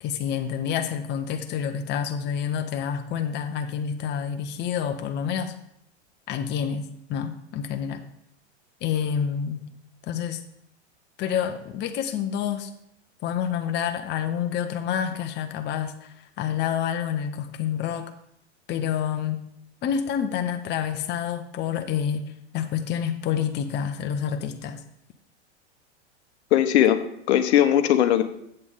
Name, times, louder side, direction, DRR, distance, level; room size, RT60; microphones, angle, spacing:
voice 1, 0.0-5.5 6.3-8.0 8.8-9.7 10.1-10.4 11.2-12.7 13.2-18.1 18.7-19.4 19.8-24.8, left 8 dB, 30° left, 6 dB, 0.7 m, -28 dB
voice 2, 26.5-28.2, left 11 dB, 65° left, 8 dB, 0.9 m, -19 dB
7.7 x 7.7 x 3.7 m, 0.76 s
hypercardioid pair, 100°, 35 cm